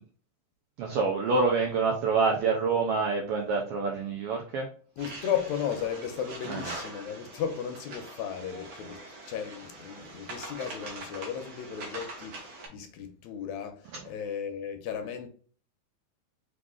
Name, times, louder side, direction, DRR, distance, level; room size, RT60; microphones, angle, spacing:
voice 1, 0.8-4.7 6.5-6.7, right 4 dB, 85° right, 1.3 m, -27 dB
voice 2, 5.0-15.3, left 8 dB, 80° left, 1.9 m, -35 dB
sound 1, 5.0-12.7, right 2 dB, 60° right, 1.0 m, -43 dB
4.9 x 2.5 x 3.6 m
omnidirectional pair, 3.3 m